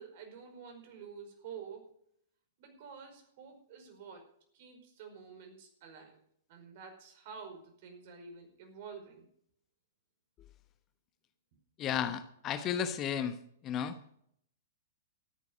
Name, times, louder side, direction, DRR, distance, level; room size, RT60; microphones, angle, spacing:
voice 1, 0.0-1.9 2.6-4.3 4.5-6.2 6.5-9.2, right 6 dB, 55° right, 4 dB, 5.1 m, -49 dB
voice 2, 11.8-13.3 13.6-14.0, left 8 dB, 30° left, 10 dB, 1.1 m, -33 dB
13.5 x 9.4 x 6.4 m, 0.67 s
hypercardioid pair, 115°, 0 cm